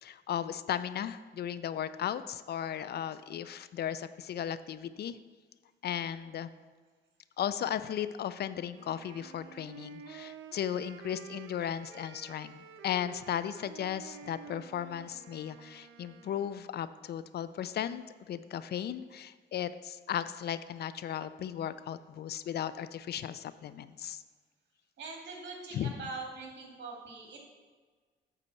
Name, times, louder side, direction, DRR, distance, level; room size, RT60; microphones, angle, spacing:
voice 1, 0.0-5.2 5.8-6.5 7.4-24.2 25.7-25.9, left 10 dB, 55° left, 14 dB, 0.4 m, -36 dB
Wind instrument woodwind instrument, 8.7-16.7, right 8 dB, 85° right, 0.6 m, -50 dB
voice 2, 25.0-27.4, right 4 dB, 60° right, 0 dB, 2.2 m, -42 dB
8.3 x 4.1 x 6.8 m, 1.5 s
cardioid pair, 90°, 20 cm